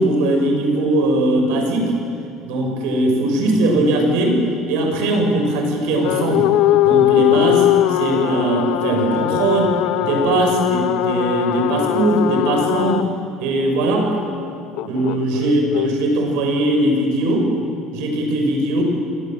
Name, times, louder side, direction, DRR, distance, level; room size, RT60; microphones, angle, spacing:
voice 1, 0.0-1.9 2.4-6.5 6.8-13.1 13.4-14.1 14.8-17.5 17.9-18.8, right 1 dB, 80° right, 2 dB, 6.9 m, -19 dB
sound 1, 6.0-13.0 14.8-15.9, left 14 dB, 65° left, 0.8 m, -20 dB
28.5 x 23.0 x 7.8 m, 2.5 s
cardioid pair, 145°, 0 cm